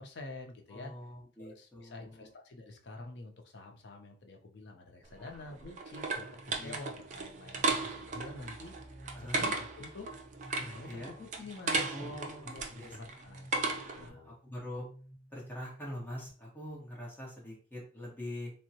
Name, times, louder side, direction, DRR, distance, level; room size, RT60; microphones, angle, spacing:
voice 1, 0.0-0.9 1.4-8.7 9.2-10.1 10.5-14.4, left 2 dB, 70° left, 3 dB, 0.6 m, -48 dB
voice 2, 0.7-2.3 5.2-5.4 6.6-6.8 9.1-9.5 10.8-11.1 11.9-12.9 13.8-14.8 15.3-18.5, left 1 dB, 10° left, -4 dB, 1.0 m, -44 dB
sound 1, 5.1-14.1, right 3 dB, 40° right, 0.4 m, -36 dB
sound 2, 6.1-16.3, right 1 dB, 10° right, 1.1 m, -54 dB
3.5 x 2.1 x 2.8 m, 0.41 s
head